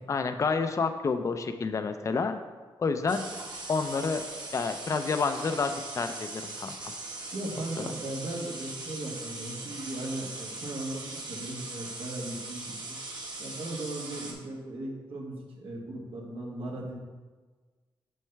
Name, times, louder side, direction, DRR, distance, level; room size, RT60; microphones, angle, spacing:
voice 1, 0.1-2.4 2.8-3.2 3.7-4.3 4.5-6.9, left 4 dB, 35° left, 8 dB, 0.4 m, -29 dB
sound 1, 3.1-14.3, right 2 dB, 50° right, 1.3 m, -40 dB
voice 2, 7.3-12.7 13.4-16.9, right 1 dB, 80° right, -2 dB, 1.4 m, -37 dB
6.3 x 5.5 x 3.4 m, 1.4 s
cardioid pair, 95°, 9 cm